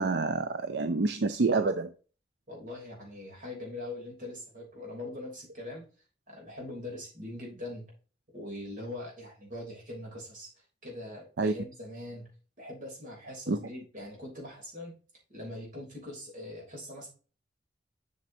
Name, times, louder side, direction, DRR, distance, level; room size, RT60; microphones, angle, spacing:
voice 1, 0.0-1.9 11.4-11.5 13.5-13.6, right 3 dB, 70° right, 0.5 m, -27 dB
voice 2, 2.5-5.8 6.3-7.9 8.3-10.5 10.8-12.3 12.6-14.9 15.3-17.1, left 1 dB, 45° right, 3.2 m, -42 dB
7.4 x 6.4 x 2.7 m
head